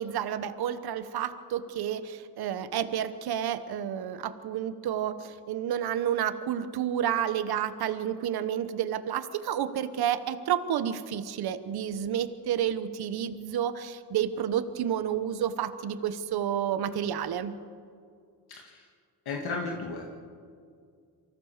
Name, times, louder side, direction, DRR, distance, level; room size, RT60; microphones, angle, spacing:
voice 1, 0.0-17.5, right 9 dB, 80° right, 11 dB, 1.1 m, -30 dB
voice 2, 18.5-18.9 19.3-20.1, left 3 dB, 80° left, 1 dB, 2.1 m, -34 dB
24.0 x 15.5 x 7.4 m, 2.2 s
cardioid pair, 85°, 37 cm